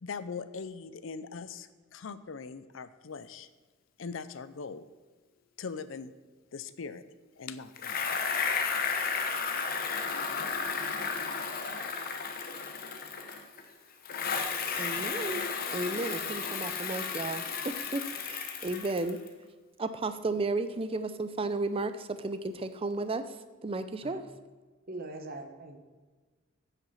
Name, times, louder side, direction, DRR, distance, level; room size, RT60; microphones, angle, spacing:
voice 1, 0.0-3.5 4.0-4.9 5.6-6.1 6.5-7.0 7.4-8.4, left 5 dB, 70° left, 14 dB, 0.5 m, -41 dB
Bicycle, 7.8-13.6 14.0-19.3, left 5 dB, 45° left, 0.9 m, -33 dB
voice 2, 14.8-15.4 15.7-19.2 19.8-23.2 23.6-24.3, right 2 dB, 30° right, 10 dB, 0.5 m, -33 dB
voice 3, 24.9-25.8, right 2 dB, 50° right, 5 dB, 1.1 m, -42 dB
9.4 x 5.8 x 5.7 m, 1.3 s
head